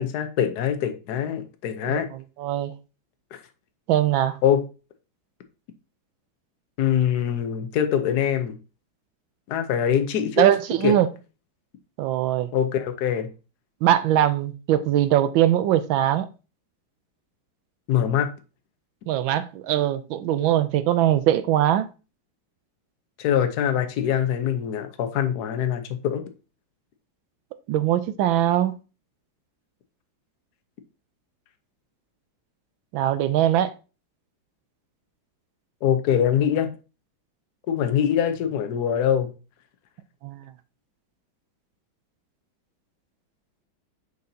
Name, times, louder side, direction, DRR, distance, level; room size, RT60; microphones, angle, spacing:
voice 1, 0.0-2.1 3.3-3.4 4.4-4.6 6.8-8.6 9.5-10.5 10.8-10.9 12.5-13.3 17.9-18.3 23.2-26.2 35.8-36.7 37.7-39.3, left 9 dB, 60° left, 1.2 m, -23 dB
voice 2, 2.4-2.7 3.9-4.3 10.4-11.1 12.0-12.5 13.8-16.3 19.1-21.9 27.7-28.8 32.9-33.7 40.2-40.4, right 12 dB, 80° right, 1.3 m, -21 dB
6.6 x 6.3 x 2.7 m
omnidirectional pair, 2.2 m